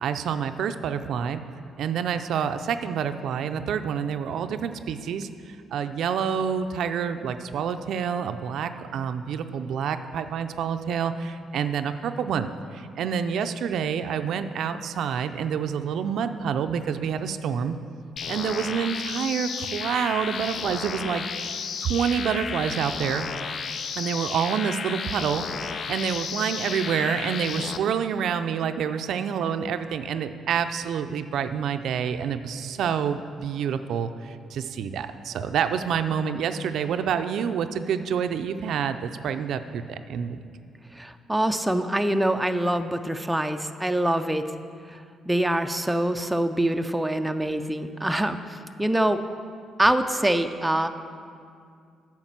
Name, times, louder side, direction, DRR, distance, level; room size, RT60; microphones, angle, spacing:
voice 1, 0.0-1.4 1.8-5.3 5.7-12.5 12.7-17.7 18.3-21.2 21.8-23.3 24.0-40.4, right 7 dB, 75° right, 9 dB, 0.4 m, -27 dB
sound 1, 18.2-27.8, left 6 dB, 60° left, 0.5 m, -33 dB
voice 2, 41.0-44.5 44.9-45.0 45.3-49.2 49.8-50.9, right 1 dB, 5° right, 7 dB, 0.5 m, -25 dB
9.0 x 5.9 x 7.3 m, 2.3 s
cardioid pair, 90°, 0 cm